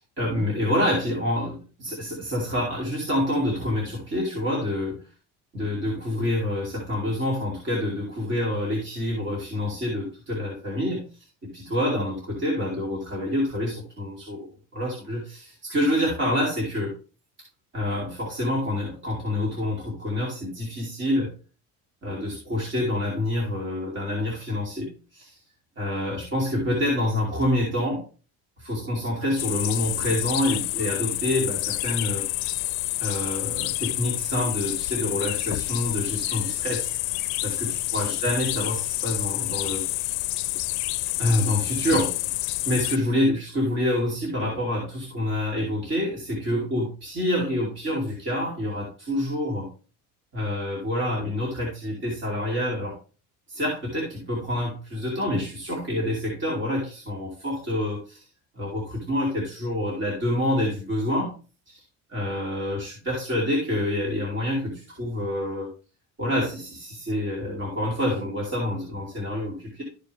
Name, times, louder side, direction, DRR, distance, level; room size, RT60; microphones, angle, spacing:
voice 1, 0.2-5.0 5.5-11.0 11.4-14.5 14.7-16.9 17.7-21.3 22.0-25.4 25.8-28.0 28.6-32.2 33.0-36.9 37.4-39.8 41.2-42.2 42.6-49.7 50.3-53.0 53.5-58.2 58.6-61.3 61.7-61.8 62.1-65.7 66.2-69.8, left 1 dB, 30° right, -4 dB, 2.8 m, -27 dB
sound 1, 29.4-43.0, left 20 dB, 75° left, 0.5 m, -28 dB
13.5 x 4.7 x 3.4 m, 0.35 s
cardioid pair, 155°, 37 cm